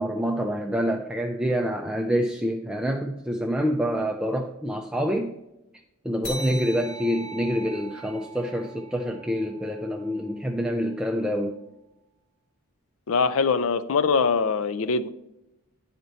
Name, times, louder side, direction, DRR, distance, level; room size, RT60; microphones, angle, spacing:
voice 1, 0.0-5.4 6.0-11.6, equal, 5° right, 2 dB, 0.4 m, -27 dB
sound 1, 6.2-11.2, right 2 dB, 50° left, 1.3 m, -41 dB
voice 2, 13.1-15.1, left 5 dB, 65° left, 14 dB, 0.4 m, -23 dB
9.5 x 4.3 x 4.0 m, 0.90 s
head